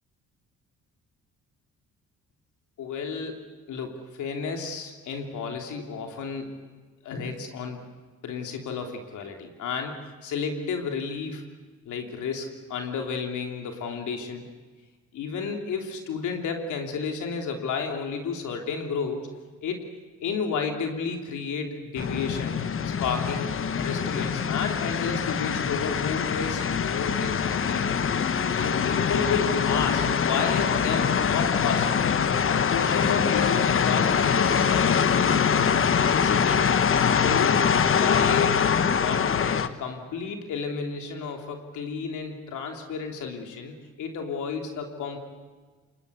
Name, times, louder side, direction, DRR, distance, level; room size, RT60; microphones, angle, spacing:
voice 1, 2.8-6.5 7.0-7.8 8.2-11.4 11.8-14.4 15.1-19.2 19.6-19.8 20.2-22.6 22.8-27.9 28.6-31.9 32.4-35.7 36.0-36.8 37.1-38.7 39.0-45.2, left 5 dB, 75° left, 3 dB, 3.2 m, -32 dB
sound 1, 22.0-39.7, left 7 dB, 45° left, 1.2 m, -24 dB
26.5 x 21.0 x 8.3 m, 1.4 s
cardioid pair, 90°, 30 cm